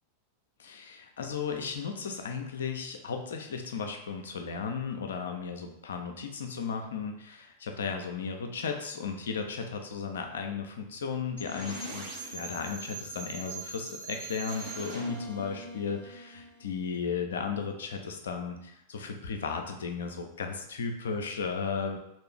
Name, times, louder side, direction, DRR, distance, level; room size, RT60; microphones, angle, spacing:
voice 1, 0.6-22.0, left 5 dB, 65° left, 4 dB, 0.5 m, -35 dB
sound 1, 11.4-17.2, right 3 dB, 50° right, 1.5 m, -42 dB
3.2 x 2.5 x 3.5 m, 0.80 s
figure-of-eight pair, 90°, 0 cm